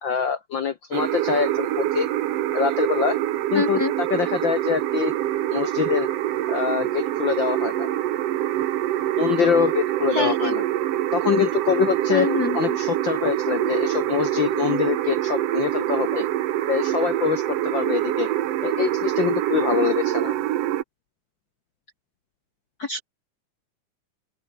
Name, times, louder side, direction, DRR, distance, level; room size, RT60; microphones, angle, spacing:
voice 1, 0.0-2.1 2.5-3.2 3.5-3.8 4.1-5.1 5.5-6.1 6.5-7.9 9.2-10.6 11.1-12.3 12.5-16.2 16.6-18.3 18.6-20.3, left 7 dB, 70° left, 1.1 m, -24 dB
sound 1, 0.9-20.8, right 13 dB, 65° right, 1.7 m, -25 dB
voice 2, 3.5-3.9 10.1-10.5 12.1-12.8 22.8-23.0, left 4 dB, 40° left, 1.6 m, -25 dB
open air
omnidirectional pair, 3.6 m